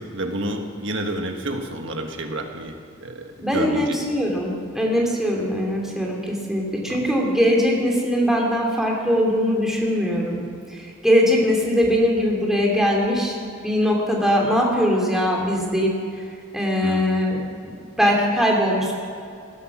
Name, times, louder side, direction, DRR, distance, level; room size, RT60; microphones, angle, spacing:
voice 1, 0.0-4.0 6.9-7.1 16.8-17.0, right 1 dB, 60° right, 4 dB, 1.6 m, -30 dB
voice 2, 3.4-10.4 10.7-15.9 16.5-17.7 18.0-18.9, equal, ahead, -2 dB, 2.5 m, -21 dB
19.0 x 11.0 x 6.2 m, 2.5 s
head